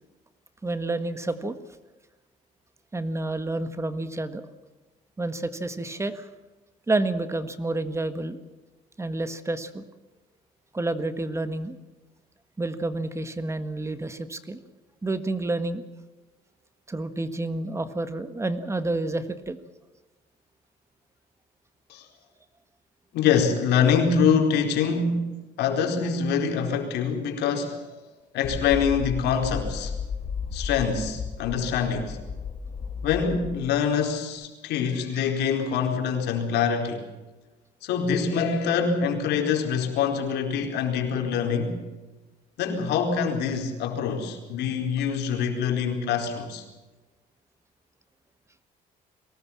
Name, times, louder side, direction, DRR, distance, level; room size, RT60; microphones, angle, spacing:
voice 1, 0.6-1.6 2.9-4.5 5.2-6.3 6.9-8.4 9.0-9.8 10.7-11.8 12.6-14.6 15.0-15.8 16.9-19.6, right 2 dB, 15° right, 11 dB, 1.7 m, -29 dB
voice 2, 23.1-25.3 25.6-27.9 28.3-29.9 30.5-32.2 33.0-37.1 37.8-41.8 42.6-46.6, left 6 dB, 80° left, 3 dB, 4.5 m, -25 dB
sound 1, 28.4-33.8, left 5 dB, 30° left, 0.9 m, -34 dB
23.5 x 19.5 x 7.3 m, 1.2 s
cardioid pair, 110°, 17 cm